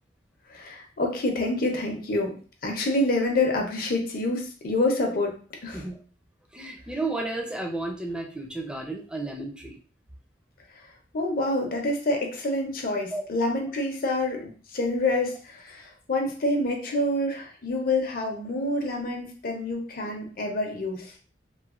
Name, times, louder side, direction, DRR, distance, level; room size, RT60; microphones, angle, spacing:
voice 1, 0.5-2.3 2.6-5.3 5.6-5.8 11.1-21.1, left 2 dB, 55° left, 1 dB, 0.6 m, -27 dB
voice 2, 6.5-9.8 13.1-13.3, right 2 dB, 5° right, 1 dB, 0.4 m, -32 dB
3.1 x 2.1 x 2.4 m, 0.40 s
head